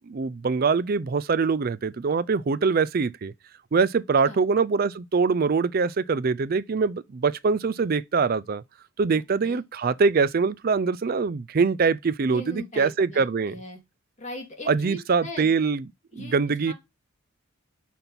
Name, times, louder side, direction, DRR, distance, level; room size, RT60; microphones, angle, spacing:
voice 1, 0.1-3.3 3.7-8.6 9.0-13.6 14.7-15.8 16.2-16.7, right 5 dB, 45° right, 0.4 m, -23 dB
voice 2, 9.1-9.6 12.3-13.8 14.2-15.5 16.1-16.3 16.7-16.8, left 1 dB, 35° left, 2.1 m, -39 dB
5.9 x 4.2 x 5.3 m
head